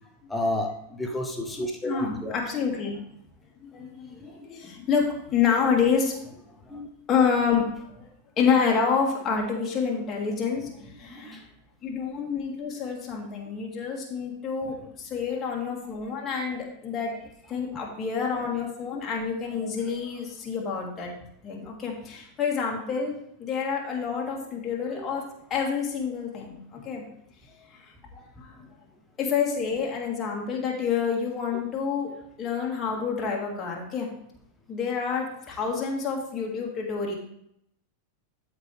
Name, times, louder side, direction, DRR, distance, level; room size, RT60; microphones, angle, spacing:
voice 1, 0.3-2.3 4.4-4.5 6.7-6.9 11.2-11.4 17.7-17.8 24.9-25.1, left 1 dB, 10° left, 2 dB, 1.0 m, -31 dB
voice 2, 1.8-3.0 3.6-6.1 7.1-8.1 8.4-11.4 11.8-17.2 17.5-21.1 21.4-23.1 23.4-27.0 27.7-27.9 28.4-28.5 29.2-34.1 34.7-37.2, left 6 dB, 25° left, -1 dB, 2.0 m, -28 dB
13.5 x 4.6 x 3.4 m, 0.74 s
figure-of-eight pair, 90°, 0 cm